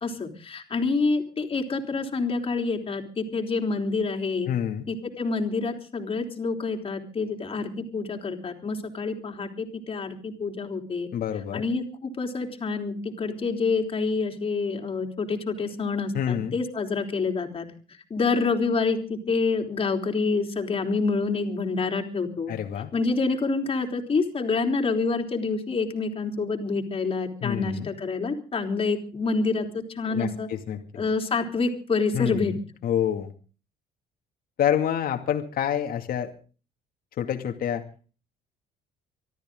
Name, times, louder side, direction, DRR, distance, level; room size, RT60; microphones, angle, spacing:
voice 1, 0.0-4.5 4.9-11.1 11.5-17.7 18.1-22.5 22.9-30.5 30.9-32.5, left 4 dB, 35° left, 3 dB, 3.5 m, -27 dB
voice 2, 4.5-4.9 11.1-11.6 16.1-16.6 22.5-22.9 27.4-27.9 30.1-30.8 32.1-32.6 32.8-33.3 34.6-36.3 37.2-37.8, left 9 dB, 60° left, 5 dB, 2.4 m, -27 dB
25.0 x 13.5 x 3.8 m, 0.37 s
cardioid pair, 110°, 17 cm